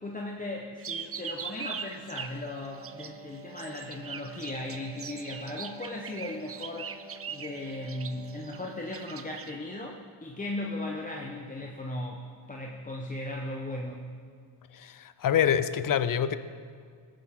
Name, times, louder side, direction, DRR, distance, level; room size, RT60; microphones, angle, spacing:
voice 1, 0.0-6.9 7.3-14.1, left 1 dB, 20° left, 0 dB, 1.2 m, -37 dB
sound 1, 0.8-3.2 3.5-9.5, right 7 dB, 30° right, 0.6 m, -41 dB
Wind instrument woodwind instrument, 2.5-9.3, right 4 dB, 65° left, 1.7 m, -49 dB
voice 2, 14.7-16.4, left 9 dB, 50° left, 13 dB, 0.7 m, -26 dB
17.5 x 10.5 x 3.8 m, 2.1 s
cardioid pair, 80°, 44 cm